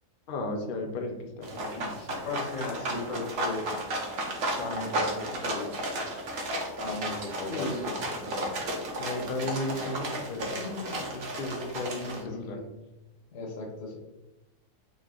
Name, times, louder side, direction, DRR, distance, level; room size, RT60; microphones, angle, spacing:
voice 1, 0.3-2.3 7.5-8.0 9.0-12.6, left 2 dB, 75° left, 3 dB, 0.4 m, -35 dB
sound 1, 1.4-12.2, right 1 dB, 60° right, 1.2 m, -33 dB
voice 2, 2.2-3.7 4.5-6.0 6.8-8.4 12.0-12.7 13.3-14.0, left 3 dB, 60° left, 0 dB, 1.2 m, -37 dB
4.0 x 3.0 x 3.6 m, 1.0 s
omnidirectional pair, 1.7 m